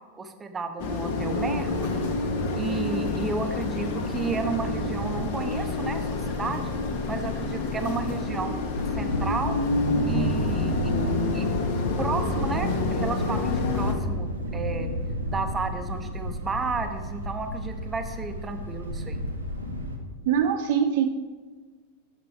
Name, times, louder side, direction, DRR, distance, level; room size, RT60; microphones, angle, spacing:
voice 1, 0.2-2.0 2.5-6.7 7.1-8.6 8.9-9.6 10.0-10.9 11.3-11.5 12.0-14.9 15.3-19.2, right 4 dB, 15° right, 7 dB, 0.7 m, -32 dB
sound 1, 0.8-13.9, left 3 dB, 50° left, 0.9 m, -28 dB
Thunder, 8.8-20.0, equal, 80° right, 0.9 m, -31 dB
voice 2, 20.3-21.1, right 8 dB, 50° right, 7 dB, 0.4 m, -22 dB
6.3 x 5.9 x 4.4 m, 1.4 s
figure-of-eight pair, 90°, 0 cm